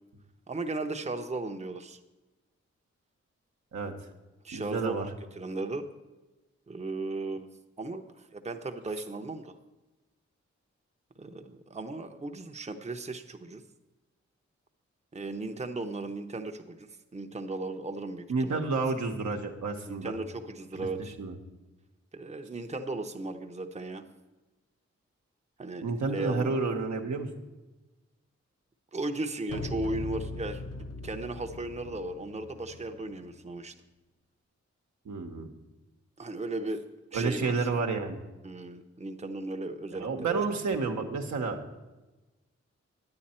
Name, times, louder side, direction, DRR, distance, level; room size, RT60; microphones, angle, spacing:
voice 1, 0.5-2.0 4.4-5.8 6.7-7.5 7.8-9.5 11.2-13.6 15.1-18.7 19.9-21.1 22.1-24.0 25.6-25.9 26.1-26.5 28.9-33.7 36.2-36.8 37.1-37.7 38.4-40.5, right 2 dB, 25° right, 6 dB, 0.8 m, -36 dB
voice 2, 4.5-5.1 18.3-20.2 20.7-21.3 25.8-27.3 35.0-35.5 37.1-38.2 40.0-41.6, right 4 dB, 75° right, 3 dB, 1.0 m, -30 dB
sound 1, 29.5-33.5, left 2 dB, 60° left, 1.0 m, -40 dB
9.4 x 8.8 x 4.3 m, 1.1 s
cardioid pair, 40°, 29 cm